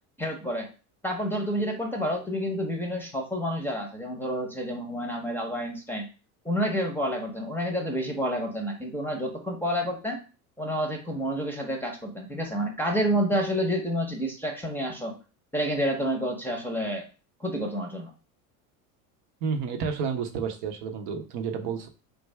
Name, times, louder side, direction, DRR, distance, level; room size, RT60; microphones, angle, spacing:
voice 1, 0.2-0.7 1.0-6.1 6.4-10.2 10.6-15.2 15.5-17.1 17.4-18.1, equal, 5° left, 2 dB, 0.8 m, -29 dB
voice 2, 19.4-21.9, right 6 dB, 60° right, 4 dB, 0.8 m, -30 dB
3.4 x 2.6 x 3.3 m, 0.33 s
supercardioid pair, 105°, 43 cm